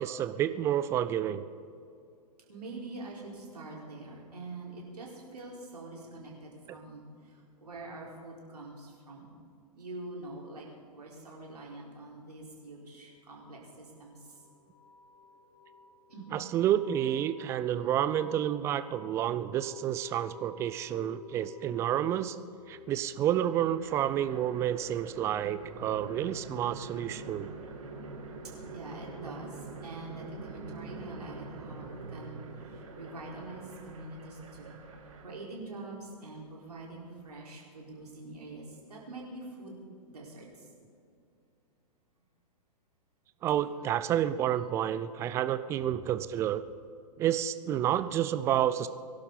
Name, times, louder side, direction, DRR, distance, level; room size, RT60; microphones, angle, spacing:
voice 1, 0.0-1.4 16.3-22.4 22.7-27.5 43.4-46.6 47.2-48.9, right 11 dB, 15° right, 12 dB, 0.3 m, -29 dB
voice 2, 2.5-7.1 7.6-9.3 9.7-10.7 10.9-14.2 16.1-16.4 28.7-34.8 35.2-39.8 40.1-40.5 43.5-43.6 44.4-44.8, right 2 dB, 70° right, -3 dB, 4.4 m, -45 dB
sound 1, 13.5-28.0, left 5 dB, 45° left, 3.0 m, -53 dB
sound 2, 23.8-35.3, right 3 dB, 55° right, 2.6 m, -45 dB
23.5 x 11.5 x 4.0 m, 2.4 s
figure-of-eight pair, 110°, 21 cm